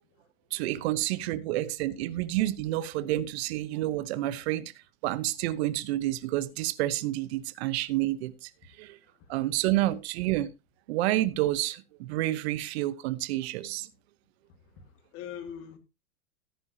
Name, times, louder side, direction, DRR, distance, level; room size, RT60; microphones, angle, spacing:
voice 1, 0.5-4.7 5.0-8.5 8.8-9.0 9.3-10.5 10.9-13.9, right 15 dB, 45° right, 0.9 m, -29 dB
voice 2, 14.5-15.8, left 8 dB, 30° left, 2.0 m, -43 dB
13.5 x 9.9 x 2.8 m
hypercardioid pair, 140°, 46 cm